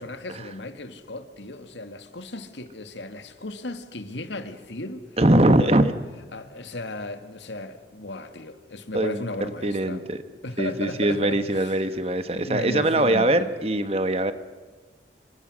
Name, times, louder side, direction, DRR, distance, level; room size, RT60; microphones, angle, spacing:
voice 1, 0.0-5.2 5.6-5.8 6.3-10.1 10.4-11.9 12.3-13.5, left 2 dB, 85° left, 2.1 m, -35 dB
voice 2, 5.2-5.9 8.9-10.2 10.6-14.3, right 1 dB, 35° right, 1.5 m, -22 dB
27.5 x 25.0 x 6.4 m
head